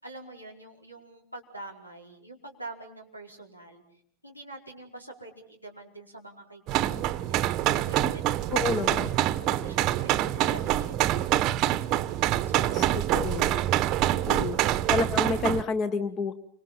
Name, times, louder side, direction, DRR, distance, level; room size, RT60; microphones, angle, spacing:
voice 1, 0.0-3.8 4.2-8.2 8.6-8.8 9.2-12.0 12.5-13.1, right 2 dB, 90° left, 3 dB, 4.8 m, -45 dB
sound 1, 6.7-15.6, right 13 dB, 35° right, 0.9 m, -26 dB
voice 2, 8.5-9.1 12.7-12.8 13.1-13.6 14.3-14.6 14.9-16.3, left 4 dB, 30° left, 12 dB, 1.3 m, -29 dB
29.5 x 25.5 x 5.8 m, 0.65 s
figure-of-eight pair, 90°, 0 cm